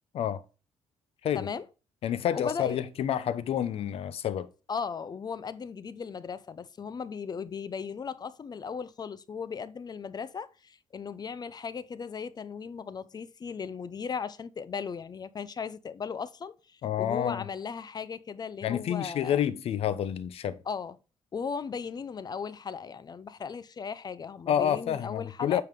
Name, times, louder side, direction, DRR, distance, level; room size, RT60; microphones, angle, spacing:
voice 1, 1.3-1.6 2.3-2.8 4.7-19.4 20.7-21.0 21.3-25.6, left 6 dB, 40° left, 0.8 m, -37 dB
voice 2, 2.0-4.5 16.8-17.4 18.6-20.6 24.5-25.6, left 10 dB, 70° left, 0.9 m, -29 dB
9.0 x 5.6 x 3.8 m
cardioid pair, 90°, 11 cm